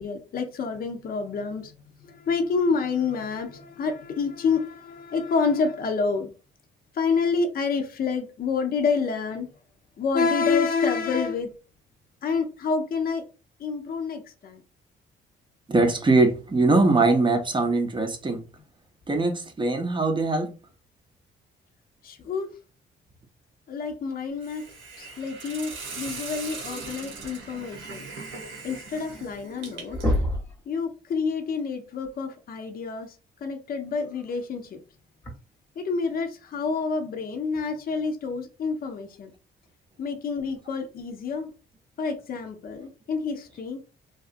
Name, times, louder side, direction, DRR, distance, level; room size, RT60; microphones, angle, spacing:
voice 1, 0.0-1.7 2.0-6.3 7.0-9.5 10.0-11.5 12.2-13.2 13.6-14.6 22.0-22.5 23.7-24.6 25.0-28.1 28.6-30.0 30.7-33.1 33.4-34.8 35.8-39.3 40.0-41.5 42.0-43.8, left 5 dB, 50° left, 0.6 m, -28 dB
voice 2, 15.7-18.4 19.1-20.5, right 3 dB, 25° right, 0.6 m, -22 dB
Hiss, 24.4-30.2, right 4 dB, 85° right, 1.0 m, -40 dB
sound 1, 29.5-29.6 29.9-30.6 32.3-32.4 34.2-34.4 35.2-35.3, left 1 dB, 10° left, 0.9 m, -26 dB
2.7 x 2.3 x 2.5 m
cardioid pair, 90°, 20 cm